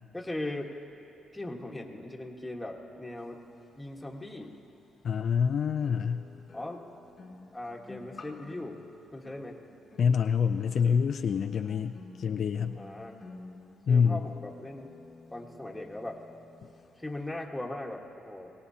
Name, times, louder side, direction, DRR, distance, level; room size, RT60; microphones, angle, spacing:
voice 1, 0.1-0.8 1.3-3.4 3.8-4.6 6.5-6.8 7.5-8.8 9.1-9.6 12.7-13.2 13.9-14.9 15.3-16.2 17.0-18.5, left 1 dB, 10° left, 1 dB, 1.4 m, -39 dB
sound 1, 4.4-4.5 5.8-16.9 17.2-17.4, left 3 dB, 40° left, 1.1 m, -51 dB
voice 2, 5.0-6.3 10.0-12.8 13.9-14.2, left 6 dB, 60° left, 7 dB, 0.4 m, -26 dB
23.0 x 17.5 x 2.8 m, 2.8 s
cardioid pair, 90°, 0 cm